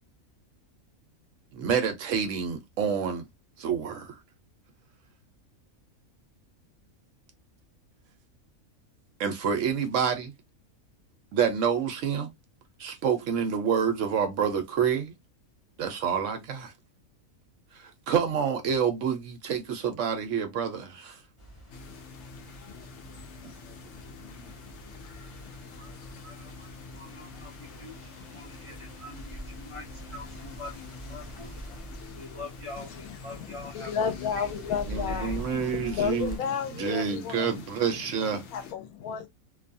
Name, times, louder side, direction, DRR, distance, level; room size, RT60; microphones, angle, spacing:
voice 1, 1.5-3.3 3.6-4.2 9.2-10.3 11.3-12.3 12.8-15.1 15.8-16.7 17.7-21.2 34.9-36.4 36.7-38.4, right 7 dB, 70° right, 0.9 m, -28 dB
sound 1, 21.4-36.4, right 1 dB, 25° left, 0.8 m, -45 dB
sound 2, 21.7-38.7, left 5 dB, 65° left, 0.9 m, -47 dB
voice 2, 25.8-31.5 32.1-35.4, left 2 dB, 45° left, 0.4 m, -45 dB
voice 3, 33.8-35.4 35.7-37.5 38.5-39.3, left 7 dB, 85° left, 1.1 m, -31 dB
2.5 x 2.3 x 2.5 m
omnidirectional pair, 1.5 m